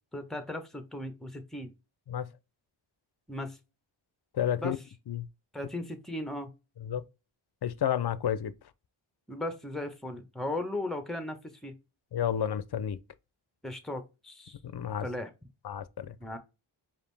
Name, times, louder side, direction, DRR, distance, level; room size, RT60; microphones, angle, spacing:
voice 1, 0.1-1.7 3.3-3.6 4.6-4.7 5.5-6.5 9.3-11.4 11.6-11.7 13.6-14.6 15.0-15.3 16.2-16.4, left 1 dB, ahead, 0.9 m, -36 dB
voice 2, 4.3-4.8 5.1-5.3 6.8-7.0 7.6-8.5 12.1-13.0 14.6-15.1 15.6-16.2, left 9 dB, 55° left, 0.5 m, -31 dB
5.0 x 2.7 x 3.3 m
cardioid pair, 50°, 48 cm